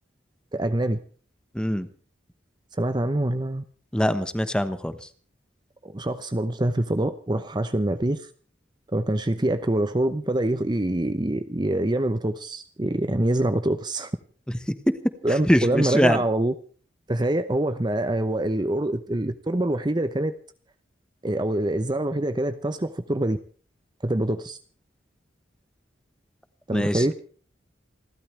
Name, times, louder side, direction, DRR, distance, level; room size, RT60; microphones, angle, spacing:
voice 1, 0.5-1.0 2.8-3.6 5.8-8.3 8.9-14.1 15.2-16.5 17.1-20.3 21.2-23.4 24.0-24.6 26.7-27.1, right 1 dB, 25° right, 10 dB, 0.7 m, -25 dB
voice 2, 1.5-1.9 3.9-4.9 15.5-16.2 26.7-27.0, equal, 5° left, 11 dB, 1.1 m, -22 dB
28.5 x 12.5 x 3.3 m, 0.42 s
head